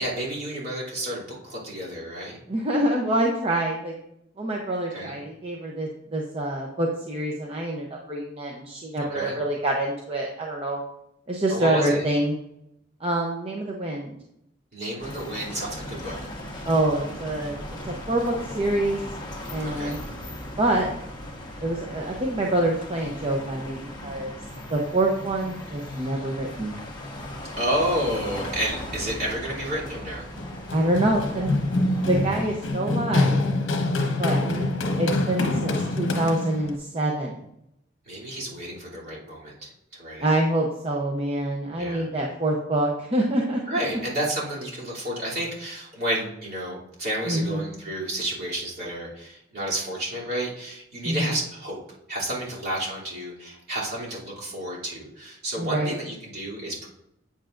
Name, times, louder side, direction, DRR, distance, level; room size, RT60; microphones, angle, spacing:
voice 1, 0.0-2.4 4.9-5.1 9.0-9.4 11.5-12.0 14.7-16.3 19.6-20.0 27.6-30.3 38.1-40.3 41.7-42.1 43.7-51.8 52.1-56.9, right 1 dB, 50° right, -7 dB, 3.0 m, -31 dB
voice 2, 2.5-3.9 4.4-10.8 11.3-12.4 13.0-14.1 16.6-19.0 19.5-20.0 20.6-20.9 21.6-24.3 24.7-26.7 30.7-31.5 32.0-33.4 34.2-37.4 40.2-43.6 47.3-47.7 51.0-51.3 55.6-55.9, right 1 dB, 30° right, -1 dB, 0.7 m, -26 dB
sound 1, 15.0-32.7, left 1 dB, 25° left, 1.3 m, -38 dB
Run, 30.4-36.7, left 2 dB, 75° left, 1.1 m, -25 dB
8.4 x 7.8 x 2.5 m, 0.79 s
head